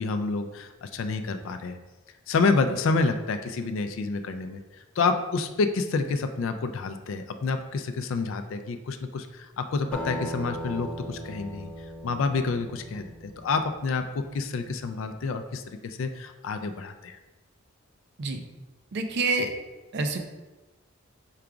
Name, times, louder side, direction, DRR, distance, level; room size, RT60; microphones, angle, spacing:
voice 1, 0.0-1.8 2.3-4.6 5.0-11.7 12.0-17.2, left 4 dB, 70° left, 8 dB, 0.3 m, -28 dB
Acoustic guitar, 9.9-14.8, equal, 5° left, 0.7 m, -39 dB
voice 2, 18.9-19.5 19.9-20.2, right 3 dB, 55° right, 5 dB, 0.5 m, -27 dB
4.8 x 2.3 x 4.8 m, 1.1 s
head